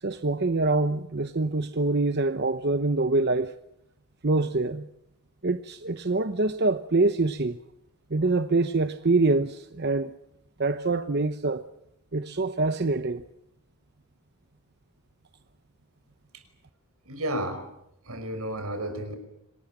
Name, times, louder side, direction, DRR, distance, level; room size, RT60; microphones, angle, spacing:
voice 1, 0.0-3.5 4.2-4.9 5.4-7.6 8.1-10.1 10.6-11.7 12.1-13.2, right 3 dB, 50° right, 0.9 m, -25 dB
voice 2, 17.1-17.6 18.0-19.2, right 1 dB, 80° right, 5.4 m, -32 dB
27.0 x 20.0 x 8.8 m
head